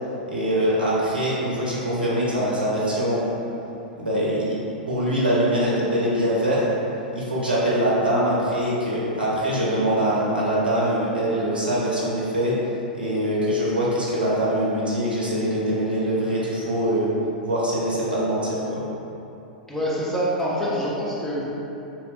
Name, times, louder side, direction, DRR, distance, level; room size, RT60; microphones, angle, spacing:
voice 1, 0.3-3.3 4.0-4.6 4.9-6.6 7.1-12.5 12.9-17.1 17.4-18.8, equal, 80° right, -7 dB, 0.6 m, -23 dB
voice 2, 19.7-21.4, equal, 5° left, -7 dB, 0.5 m, -25 dB
3.2 x 2.8 x 2.3 m, 2.9 s
figure-of-eight pair, 95°, 5 cm